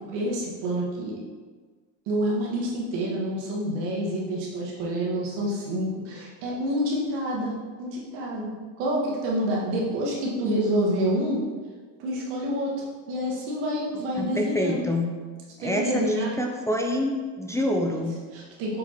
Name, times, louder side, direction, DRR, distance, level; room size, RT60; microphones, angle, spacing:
voice 1, 0.1-1.2 2.1-8.5 8.8-11.4 12.0-12.7 13.1-14.8 15.6-16.4 17.9-18.0 18.3-18.8, equal, 85° right, -4 dB, 1.7 m, -28 dB
voice 2, 14.1-15.1 15.6-18.2, left 1 dB, 5° left, 1 dB, 0.5 m, -27 dB
7.3 x 4.5 x 2.9 m, 1.5 s
supercardioid pair, 95°, 47 cm